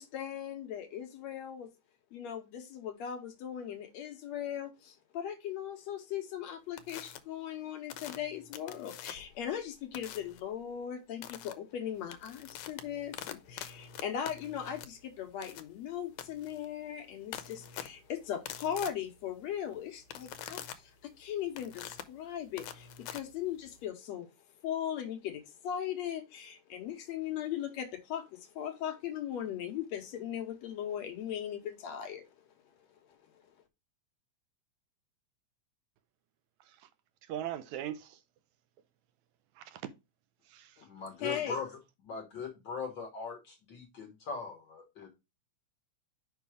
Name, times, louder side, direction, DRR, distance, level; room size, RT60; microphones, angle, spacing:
voice 1, 0.0-1.7 2.1-24.3 24.6-32.2 33.3-33.4 41.2-41.6, left 9 dB, 70° left, 2.0 m, -38 dB
sound 1, 6.8-7.2 7.9-9.4 9.9-10.4 11.2-11.5 12.0-23.9, left 10 dB, 85° left, 2.2 m, -45 dB
voice 2, 37.2-38.2 39.6-39.8 40.5-40.9, right 11 dB, 80° right, 1.9 m, -41 dB
voice 3, 40.8-41.7 42.0-45.1, left 5 dB, 50° left, 1.5 m, -40 dB
5.3 x 4.6 x 4.8 m
omnidirectional pair, 3.4 m